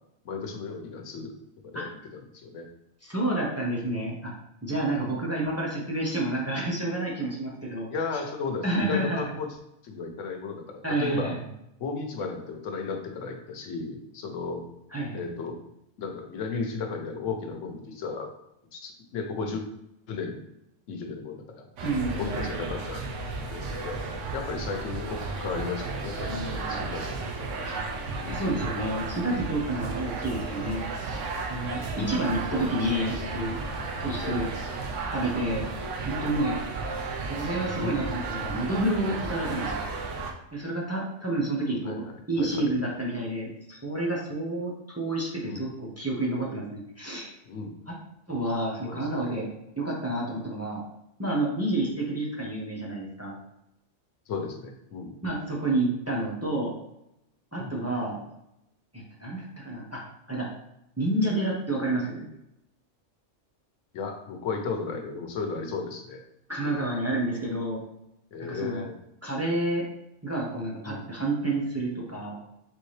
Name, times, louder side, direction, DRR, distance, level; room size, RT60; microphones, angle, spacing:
voice 1, 0.2-1.3 1.6-2.7 7.9-9.5 9.8-11.3 11.8-14.6 15.1-15.6 16.0-18.3 18.7-19.7 20.1-20.4 20.9-21.6 22.2-23.0 23.5-24.0 24.3-27.8 28.2-28.4 30.6-30.9 32.0-32.2 32.5-32.9 34.2-34.4 37.8-38.0 41.9-42.7 45.4-45.7 47.4-47.8 48.8-49.5 50.3-50.5 54.3-55.2 57.6-57.8 63.9-66.2 66.6-66.9 68.3-68.9 70.8-71.0, left 4 dB, 90° left, 3 dB, 1.1 m, -35 dB
voice 2, 3.0-4.3 4.6-7.9 8.6-9.3 10.8-11.4 14.9-15.2 21.8-22.5 26.3-26.9 28.3-30.8 31.5-33.6 34.0-34.5 35.1-35.7 36.0-36.6 37.2-39.8 40.5-47.3 47.9-48.0 48.3-49.5 49.8-50.8 51.2-53.3 55.2-56.8 57.5-58.2 58.9-60.0 60.3-60.5 61.0-62.3 66.5-67.8 68.4-68.8 69.2-69.8 70.2-72.4, right 1 dB, 15° right, -3 dB, 0.8 m, -29 dB
sound 1, 21.8-40.3, right 3 dB, 85° right, 1.0 m, -33 dB
4.3 x 3.4 x 3.2 m, 0.84 s
omnidirectional pair, 1.2 m